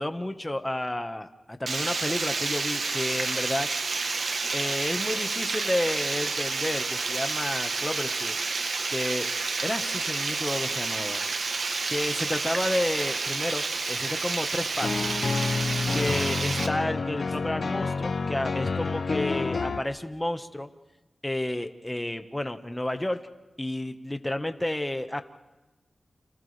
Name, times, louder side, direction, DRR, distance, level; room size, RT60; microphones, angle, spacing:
voice 1, 0.0-3.7 4.5-8.3 8.9-9.3 9.6-11.2 11.9-14.9 15.9-20.7 21.2-23.2 23.6-25.2, left 1 dB, 15° left, 7 dB, 1.5 m, -31 dB
Water, 1.7-16.7, right 4 dB, 80° right, 1.4 m, -30 dB
sound 1, 14.8-19.8, left 4 dB, 65° left, 0.7 m, -28 dB
30.0 x 28.0 x 3.5 m, 1.1 s
wide cardioid pair, 65°, 0 cm